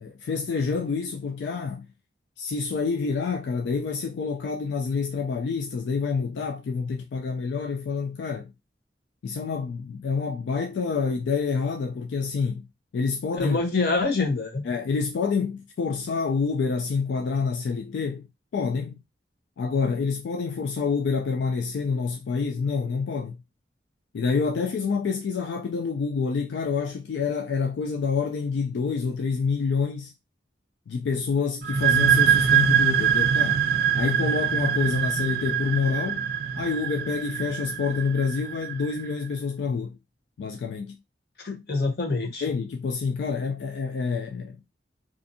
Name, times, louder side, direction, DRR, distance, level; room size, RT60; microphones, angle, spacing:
voice 1, 0.0-1.9 2.4-8.5 9.2-12.7 12.9-13.6 14.7-19.0 19.6-23.4 24.1-30.1 30.9-33.6 33.9-36.3 36.6-40.0 40.4-41.0 42.4-44.5, left 5 dB, 85° left, 0.3 m, -27 dB
voice 2, 13.4-14.6 41.4-42.5, left 3 dB, 60° left, 0.8 m, -26 dB
sound 1, 31.6-39.1, right 8 dB, 60° right, 0.3 m, -23 dB
2.6 x 2.4 x 2.6 m
head